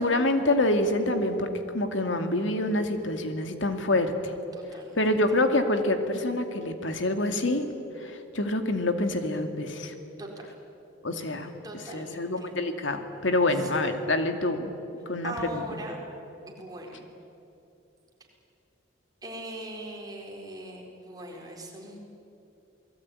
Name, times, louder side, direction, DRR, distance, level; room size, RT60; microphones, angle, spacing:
voice 1, 0.0-1.5 1.7-4.3 5.0-7.6 8.0-9.9 11.0-11.5 11.9-14.7 15.1-15.6, left 1 dB, 75° left, 6 dB, 2.4 m, -26 dB
voice 2, 4.5-5.2 10.2-10.5 11.3-11.4 11.6-12.5 13.6-13.7 15.2-16.0 16.5-17.1 19.2-22.0, right 1 dB, 20° right, -1 dB, 4.5 m, -40 dB
27.5 x 19.5 x 9.8 m, 2.8 s
head